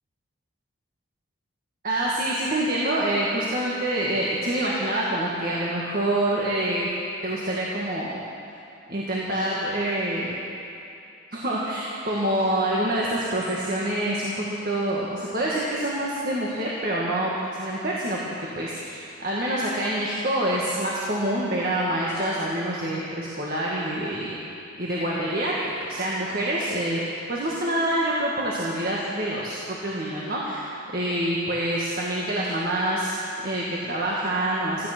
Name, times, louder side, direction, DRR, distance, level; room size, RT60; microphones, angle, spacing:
voice 1, 1.8-6.9 7.2-8.1 8.9-10.4 11.3-17.3 17.6-18.2 18.6-24.4 24.8-27.0 27.3-34.9, right 1 dB, 45° right, -5 dB, 1.8 m, -26 dB
16.0 x 14.5 x 6.0 m, 2.6 s
head